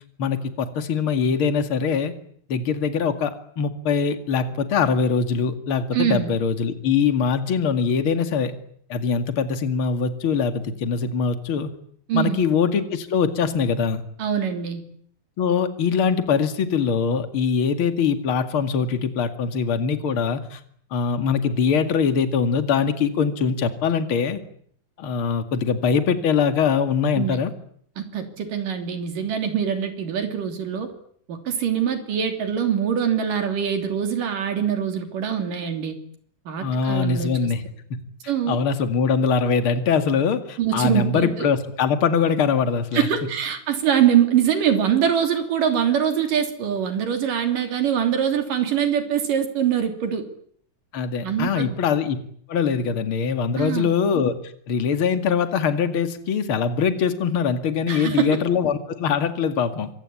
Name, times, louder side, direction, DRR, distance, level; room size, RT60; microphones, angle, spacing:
voice 1, 0.2-2.1 2.5-8.5 8.9-11.7 12.1-14.0 15.4-20.6 20.9-24.4 25.0-27.5 36.6-37.6 37.9-38.0 38.5-43.1 50.9-52.2 52.5-54.3 54.7-59.9, left 6 dB, 45° left, 8 dB, 2.7 m, -22 dB
voice 2, 5.9-6.3 12.1-12.5 14.2-14.8 27.2-27.4 28.0-30.9 31.3-36.0 36.5-37.4 38.3-38.6 40.6-41.5 42.9-50.2 51.2-51.8 53.6-53.9 57.9-58.4, right 8 dB, 90° right, 6 dB, 4.7 m, -23 dB
26.5 x 25.0 x 8.7 m, 0.63 s
omnidirectional pair, 3.7 m